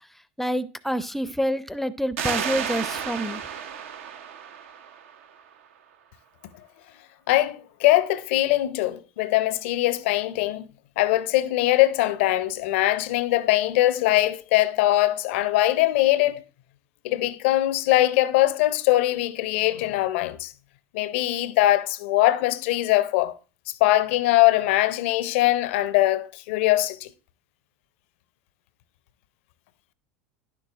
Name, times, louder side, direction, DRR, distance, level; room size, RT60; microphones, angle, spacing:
voice 1, 0.4-3.4, equal, 5° left, 0.4 m, -27 dB
sound 1, 2.2-5.5, right 8 dB, 70° right, 0.6 m, -32 dB
voice 2, 7.3-10.7 11.0-16.4 17.0-20.5 20.9-23.3 23.8-27.1, left 16 dB, 65° left, 0.5 m, -22 dB
10.0 x 6.8 x 2.4 m
hypercardioid pair, 80°, 7 cm